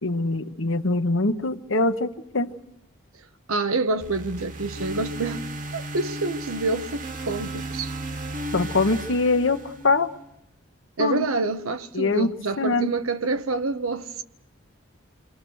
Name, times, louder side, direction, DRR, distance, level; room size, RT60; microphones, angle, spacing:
voice 1, 0.0-2.5 8.5-10.1 11.0-11.3 11.9-12.3 12.6-12.9, left 3 dB, 65° left, 1.2 m, -23 dB
voice 2, 3.5-5.5 5.7-7.9 11.0-14.2, right 3 dB, 85° right, 1.1 m, -27 dB
sound 1, 4.0-10.2, right 1 dB, 40° right, 1.3 m, -35 dB
27.5 x 23.5 x 6.4 m
head